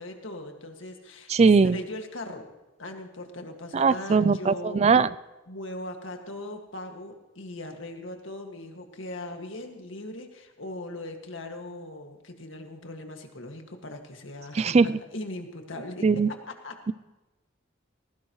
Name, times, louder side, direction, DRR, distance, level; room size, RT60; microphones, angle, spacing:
voice 1, 0.0-2.5 2.8-4.9 5.5-16.4 16.6-16.7, left 2 dB, 80° left, 4 dB, 1.9 m, -39 dB
voice 2, 1.3-1.8 3.7-5.1 14.5-14.9 16.0-16.3, right 4 dB, 35° right, 17 dB, 0.3 m, -20 dB
18.5 x 16.0 x 3.1 m, 1.1 s
head